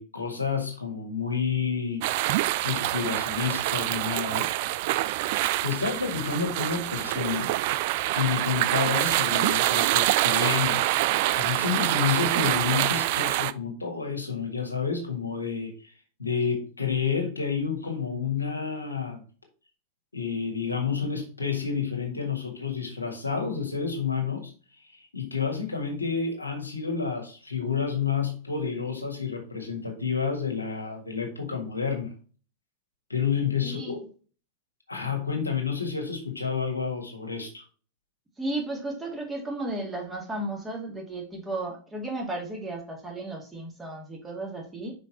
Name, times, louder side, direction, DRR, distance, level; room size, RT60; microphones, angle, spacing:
voice 1, 0.0-2.0 2.6-4.5 5.6-7.5 8.1-11.0 11.3-15.9 16.2-19.2 20.1-24.5 25.1-32.1 33.1-34.0 34.9-37.6, left 6 dB, 80° left, 2 dB, 1.7 m, -29 dB
sound 1, 2.0-13.5, right 17 dB, 50° right, 0.3 m, -26 dB
voice 2, 33.6-34.0 38.4-44.9, right 2 dB, 10° right, 0 dB, 2.2 m, -34 dB
5.5 x 5.2 x 4.1 m, 0.38 s
figure-of-eight pair, 90°, 0 cm